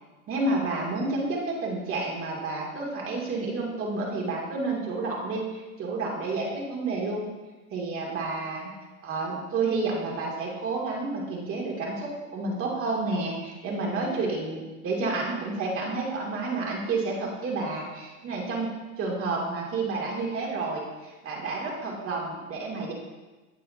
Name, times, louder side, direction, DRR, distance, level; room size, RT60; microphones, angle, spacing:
voice 1, 0.3-7.3 7.7-8.7 9.0-18.7 19.0-22.9, right 3 dB, 30° right, -3 dB, 2.5 m, -30 dB
16.0 x 6.8 x 2.8 m, 1.2 s
hypercardioid pair, 105°, 45 cm